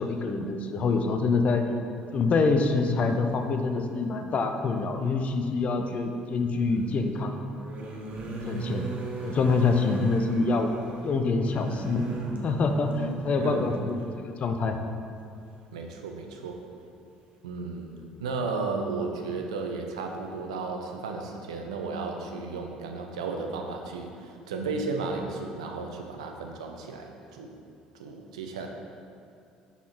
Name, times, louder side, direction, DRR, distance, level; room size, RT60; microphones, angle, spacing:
voice 1, 0.0-1.6 2.1-7.4 8.5-8.9 9.2-10.7 11.0-12.0 12.4-13.9 14.2-14.8, left 4 dB, 40° left, 5 dB, 0.5 m, -26 dB
sound 1, 4.1-4.2 6.4-14.0 15.2-15.4 15.7-15.9, right 2 dB, 45° right, 0.8 m, -37 dB
voice 2, 13.3-13.7 15.7-16.6 17.4-17.9 18.2-27.5 28.0-28.7, right 4 dB, 75° right, 3 dB, 0.5 m, -34 dB
5.9 x 4.0 x 4.5 m, 2.4 s
figure-of-eight pair, 55°, 3 cm